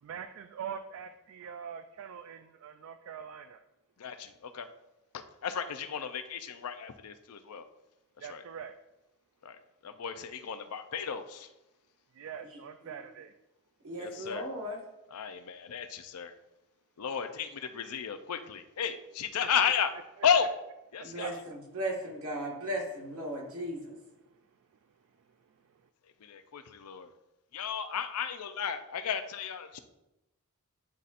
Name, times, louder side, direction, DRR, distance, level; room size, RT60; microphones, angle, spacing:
voice 1, 0.0-3.6 8.2-8.7 12.1-13.3 19.6-19.7 21.0-21.3 25.7-25.8, right 7 dB, 60° right, 8 dB, 0.3 m, -43 dB
voice 2, 4.0-4.7 5.4-7.6 8.2-8.4 9.4-9.6 9.8-11.5 14.0-14.4 15.1-16.3 17.0-19.9 20.2-20.5 20.9-21.4 26.2-27.1 27.5-29.8, left 7 dB, 85° left, 9 dB, 0.5 m, -33 dB
voice 3, 13.8-14.8 21.0-23.9, right 1 dB, 80° right, -1 dB, 1.6 m, -37 dB
9.3 x 4.1 x 2.5 m, 0.93 s
head